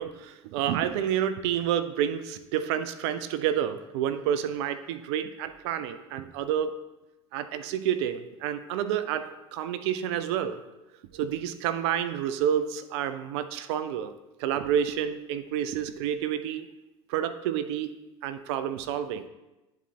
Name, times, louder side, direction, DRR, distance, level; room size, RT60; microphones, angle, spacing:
voice 1, 0.0-6.8 7.3-10.6 11.1-14.1 14.4-16.7 17.1-17.9 18.2-19.3, right 9 dB, 65° right, 11 dB, 0.5 m, -29 dB
10.5 x 4.2 x 2.8 m, 1.0 s
hypercardioid pair, 70°, 15 cm